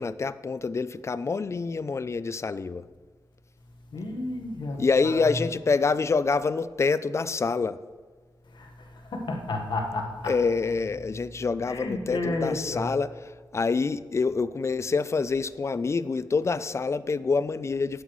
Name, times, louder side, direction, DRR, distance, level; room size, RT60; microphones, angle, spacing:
voice 1, 0.0-2.8 4.8-7.8 10.3-13.1 13.5-18.0, left 4 dB, 35° left, 15 dB, 0.4 m, -26 dB
voice 2, 3.9-4.8 5.0-5.5 8.5-8.7 9.1-10.3 11.6-13.0, left 2 dB, 70° left, 2 dB, 1.4 m, -31 dB
9.4 x 8.2 x 3.1 m, 1.5 s
cardioid pair, 80°, 8 cm